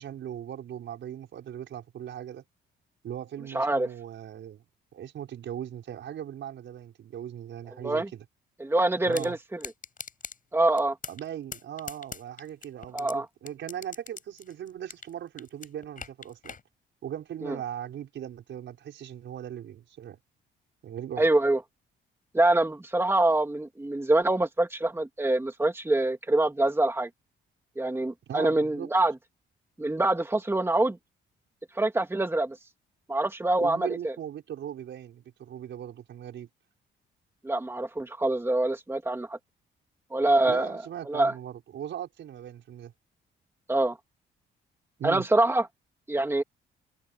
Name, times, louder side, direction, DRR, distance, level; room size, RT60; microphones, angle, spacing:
voice 1, 0.0-2.4 3.0-4.7 4.9-8.3 9.0-9.4 11.1-16.6 17.0-20.2 20.8-21.3 28.3-28.9 33.6-36.5 40.4-42.9 45.0-45.3, right 10 dB, 70° right, 5.6 m, -39 dB
voice 2, 3.5-3.9 7.8-8.1 8.6-9.4 10.5-11.0 12.9-13.3 17.4-17.6 21.2-21.6 22.3-27.1 27.8-29.1 29.8-31.0 31.7-32.6 33.1-34.1 37.4-39.4 40.1-40.8 41.1-41.3 43.7-44.0 45.0-45.7 46.1-46.4, right 2 dB, 10° right, 2.2 m, -25 dB
sound 1, 9.1-9.3 9.6-10.4 10.8-11.3 11.5-13.1 13.5-15.1 15.4-16.6, left 6 dB, 45° left, 7.5 m, -40 dB
cardioid pair, 90°, 20 cm